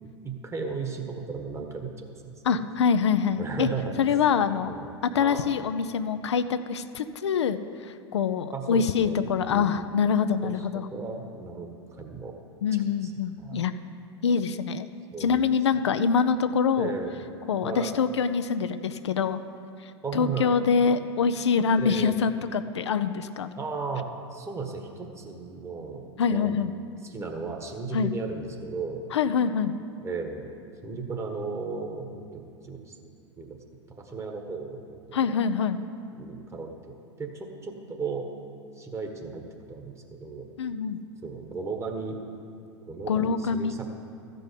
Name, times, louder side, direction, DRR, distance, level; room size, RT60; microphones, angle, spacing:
voice 1, 0.0-2.3 3.4-3.9 4.7-4.9 5.2-5.4 8.5-9.7 10.4-11.7 12.0-12.3 13.0-13.1 13.4-13.6 15.1-15.4 16.8-17.1 17.6-17.9 20.0-20.5 21.8-22.2 23.6-26.0 26.3-26.6 27.0-29.0 30.0-30.5 30.8-33.0 33.4-33.6 34.0-35.2 36.2-38.3 38.8-40.4 41.2-42.2 42.9-43.9, right 4 dB, 20° right, 3 dB, 1.4 m, -35 dB
voice 2, 2.4-3.7 4.0-4.7 5.0-10.9 12.6-13.7 14.2-14.9 15.2-16.9 17.5-19.4 19.8-23.5 26.2-26.7 27.9-28.1 29.1-29.7 35.1-35.8 40.6-41.0 43.1-43.8, left 6 dB, 70° left, 10 dB, 0.5 m, -25 dB
13.5 x 5.3 x 8.2 m, 2.4 s
figure-of-eight pair, 90°, 15 cm